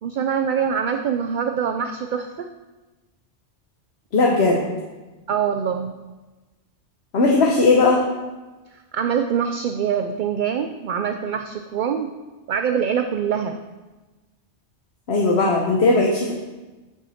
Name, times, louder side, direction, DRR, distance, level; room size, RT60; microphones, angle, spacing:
voice 1, 0.0-2.5 5.3-5.9 8.7-12.1 12.5-13.6, right 7 dB, 60° right, 6 dB, 0.6 m, -24 dB
voice 2, 4.1-4.6 7.1-8.0 15.1-16.3, left 3 dB, 65° left, -1 dB, 1.2 m, -17 dB
9.0 x 6.3 x 4.3 m, 1.2 s
omnidirectional pair, 1.1 m